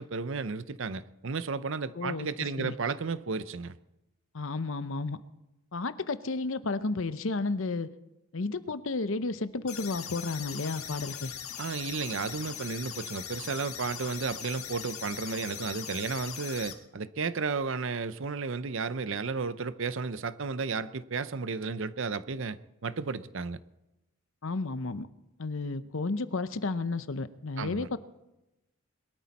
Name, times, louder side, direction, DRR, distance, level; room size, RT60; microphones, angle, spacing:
voice 1, 0.0-3.8 11.6-23.6 27.6-27.9, right 4 dB, 55° right, 15 dB, 0.6 m, -33 dB
voice 2, 2.0-2.7 4.3-5.2 5.7-7.9 8.3-11.3 24.4-25.1 25.4-28.0, left 3 dB, 60° left, 13 dB, 0.7 m, -32 dB
sound 1, 9.7-16.7, left 9 dB, 80° left, 1.7 m, -40 dB
22.0 x 13.0 x 4.2 m, 0.94 s
head